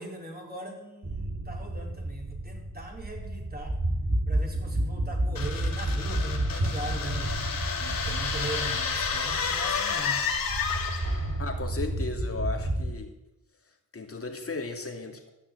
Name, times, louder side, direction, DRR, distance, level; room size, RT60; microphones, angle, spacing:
voice 1, 0.0-3.8 4.3-7.3 7.8-10.2, right 2 dB, 25° right, 0 dB, 4.2 m, -40 dB
sound 1, 1.0-12.9, right 1 dB, 45° right, 2.8 m, -31 dB
sound 2, 5.4-11.3, left 6 dB, 75° left, 2.4 m, -31 dB
voice 2, 11.4-13.1 13.9-15.3, left 3 dB, 40° left, 3 dB, 2.5 m, -35 dB
13.5 x 6.4 x 9.3 m, 0.92 s
cardioid pair, 65°, 35 cm